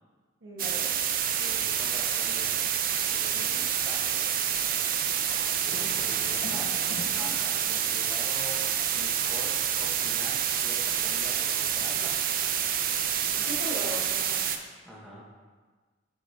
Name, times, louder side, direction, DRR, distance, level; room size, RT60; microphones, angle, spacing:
voice 1, 0.4-0.9 3.3-3.6 13.4-14.4, left 1 dB, 80° right, -5 dB, 1.1 m, -38 dB
sound 1, 0.6-14.6, right 9 dB, 50° right, 0.4 m, -28 dB
voice 2, 1.3-2.7 3.0-3.6 3.8-4.3 5.9-12.2 14.8-15.2, equal, ahead, -5 dB, 1.0 m, -45 dB
sound 2, 5.3-10.5, left 1 dB, 40° left, 0.6 m, -44 dB
10.0 x 5.2 x 2.7 m, 1.4 s
head